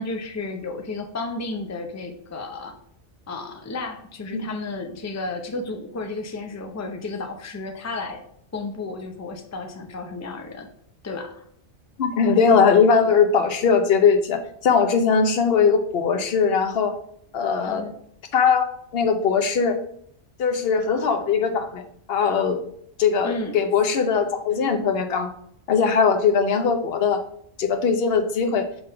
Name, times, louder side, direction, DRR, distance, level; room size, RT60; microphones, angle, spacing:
voice 1, 0.0-2.7 3.3-8.2 8.5-10.7 11.0-11.4 17.6-17.9 23.2-23.6, left 3 dB, 20° left, 5 dB, 0.5 m, -32 dB
voice 2, 12.0-16.9 17.3-17.9 18.3-18.7 18.9-19.8 20.4-22.6 23.0-25.3 25.7-27.2 27.6-28.7, left 6 dB, 55° left, 6 dB, 1.0 m, -20 dB
6.0 x 3.6 x 5.5 m, 0.66 s
omnidirectional pair, 1.2 m